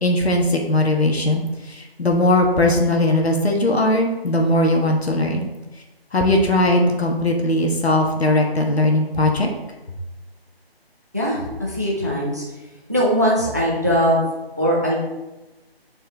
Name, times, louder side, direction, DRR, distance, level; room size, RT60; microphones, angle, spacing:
voice 1, 0.0-5.5 6.1-9.5, left 1 dB, 75° left, 2 dB, 1.3 m, -19 dB
voice 2, 11.1-12.4 12.9-14.2 14.6-15.0, equal, 15° right, -4 dB, 0.6 m, -20 dB
7.1 x 4.4 x 3.4 m, 1.1 s
figure-of-eight pair, 160°, 31 cm